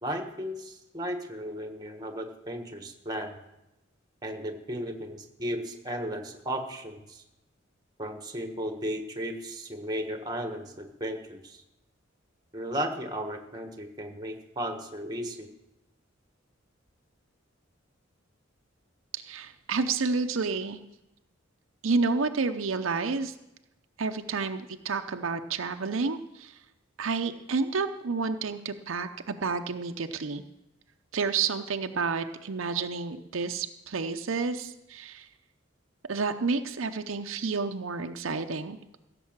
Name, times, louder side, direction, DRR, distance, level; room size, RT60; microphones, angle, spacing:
voice 1, 0.0-3.4 4.2-7.2 8.0-11.6 12.5-15.5, equal, 20° right, 5 dB, 1.4 m, -35 dB
voice 2, 19.1-20.8 21.8-23.3 24.0-26.6 27.0-30.4 31.1-35.3 36.1-38.8, right 4 dB, 80° right, 7 dB, 0.7 m, -30 dB
15.5 x 6.9 x 7.3 m, 0.91 s
head